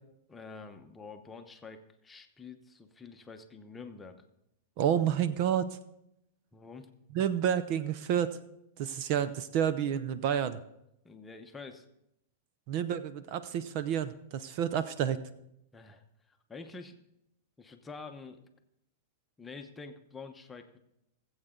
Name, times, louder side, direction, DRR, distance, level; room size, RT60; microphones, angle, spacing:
voice 1, 0.3-4.2 6.5-6.9 11.0-11.9 15.7-17.0 17.6-18.4 19.4-20.8, left 4 dB, 10° left, 5 dB, 0.9 m, -47 dB
voice 2, 4.8-5.8 7.1-8.4 8.8-10.6 12.7-15.2, right 9 dB, 45° right, 13 dB, 0.6 m, -29 dB
19.0 x 8.0 x 3.8 m, 0.83 s
supercardioid pair, 150°, 0 cm